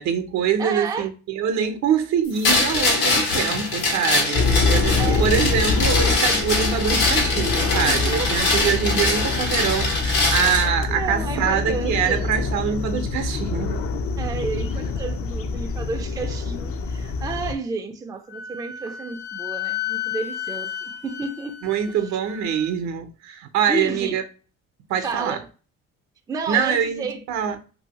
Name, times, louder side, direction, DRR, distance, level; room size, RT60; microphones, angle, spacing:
voice 1, 0.0-13.8 21.6-24.2 24.9-25.4 26.5-27.6, right 8 dB, 65° right, 0.6 m, -24 dB
voice 2, 0.6-1.1 5.0-5.3 7.9-8.5 10.9-12.2 14.2-21.6 21.9-22.0 23.7-24.2 25.0-25.5 26.3-27.2, right 4 dB, 10° right, 0.4 m, -31 dB
sound 1, 2.4-10.7, left 3 dB, 90° left, 1.3 m, -23 dB
sound 2, 4.3-17.5, left 4 dB, 45° left, 0.5 m, -25 dB
Wind instrument woodwind instrument, 18.3-22.7, left 11 dB, 70° left, 1.1 m, -32 dB
2.7 x 2.6 x 2.8 m
cardioid pair, 95°, 30 cm